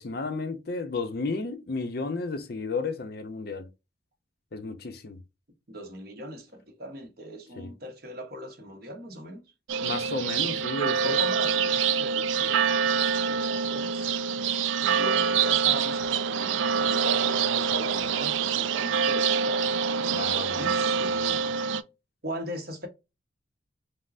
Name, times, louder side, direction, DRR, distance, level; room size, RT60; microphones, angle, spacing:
voice 1, 0.0-3.7 4.5-5.2 7.6-7.7 9.8-11.2 20.1-20.7, left 3 dB, 55° left, 0.6 m, -32 dB
voice 2, 5.7-9.4 11.0-12.6 13.3-14.1 14.8-19.7 20.5-21.7 22.2-22.9, right 1 dB, 55° right, 1.1 m, -39 dB
sound 1, 9.7-21.8, right 6 dB, 80° right, 0.3 m, -25 dB
5.3 x 2.1 x 2.5 m
head